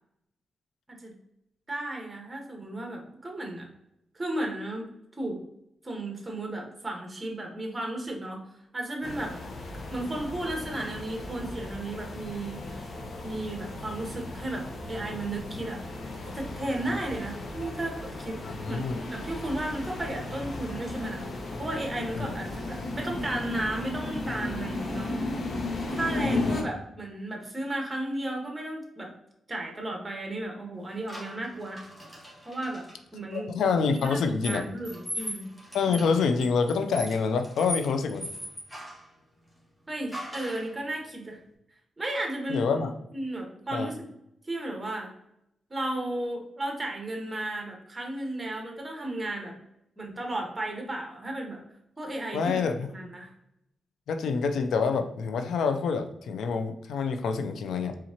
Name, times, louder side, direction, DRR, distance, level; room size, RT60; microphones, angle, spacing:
voice 1, 1.7-3.7 4.1-5.5 5.8-9.4 9.9-12.9 13.2-16.0 16.2-21.2 21.6-25.1 25.9-29.1 29.5-31.9 32.4-32.8 33.1-33.6 33.9-35.5 39.9-41.4 42.0-42.7 43.1-44.1 44.4-45.1 45.7-49.5 50.0-51.6 52.0-52.6 52.9-53.3, right 1 dB, 25° right, 1 dB, 1.4 m, -34 dB
sound 1, 9.0-26.6, left 2 dB, 55° left, 0.9 m, -35 dB
voice 2, 18.4-19.0 22.2-22.3 26.2-26.7 33.3-34.6 35.7-38.3 42.5-42.9 43.7-43.9 52.3-52.9 54.1-57.9, left 5 dB, 90° left, 7 dB, 0.5 m, -27 dB
sound 2, 31.1-33.0 33.9-39.1 40.1-40.7, equal, 10° left, 1.7 m, -39 dB
4.3 x 3.7 x 2.9 m, 0.81 s
cardioid pair, 80°, 0 cm